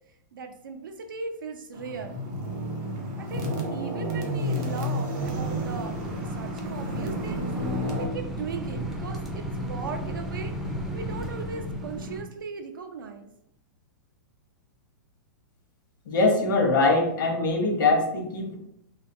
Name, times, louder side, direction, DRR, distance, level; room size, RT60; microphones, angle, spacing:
voice 1, 0.3-2.2 3.2-6.0 6.2-7.5 8.0-10.5 10.9-13.3, right 4 dB, 90° right, 6 dB, 0.5 m, -38 dB
sound 1, 1.7-8.1, equal, 35° right, 0.7 m, -31 dB
sound 2, 5.1-12.2, right 1 dB, 5° right, 0.3 m, -34 dB
voice 2, 16.1-18.6, left 3 dB, 75° left, 2 dB, 0.7 m, -22 dB
2.5 x 2.2 x 2.6 m, 0.76 s
hypercardioid pair, 135°, 11 cm